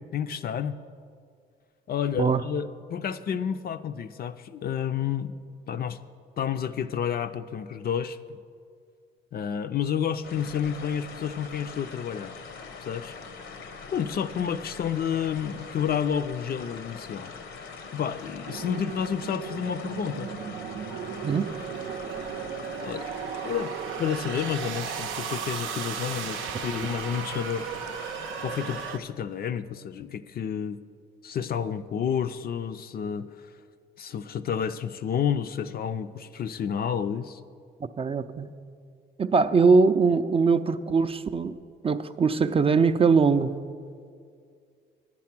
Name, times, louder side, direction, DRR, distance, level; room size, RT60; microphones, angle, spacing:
voice 1, 0.1-0.8 1.9-5.3 5.7-6.0 6.4-8.4 9.3-12.3 12.8-13.2 13.9-17.3 17.9-20.3 22.8-23.0 23.4-23.7 24.0-27.7 28.4-30.8 31.2-33.5 34.0-37.4, left 8 dB, 50° left, 11 dB, 0.5 m, -30 dB
sound 1, 10.2-28.9, left 5 dB, 75° left, 1.0 m, -42 dB
sound 2, 18.5-29.0, right 8 dB, 85° right, 0.6 m, -36 dB
voice 2, 38.0-38.5 39.2-41.6 41.8-43.6, right 5 dB, 30° right, 10 dB, 0.4 m, -21 dB
10.0 x 8.5 x 5.9 m, 2.2 s
cardioid pair, 90°, 20 cm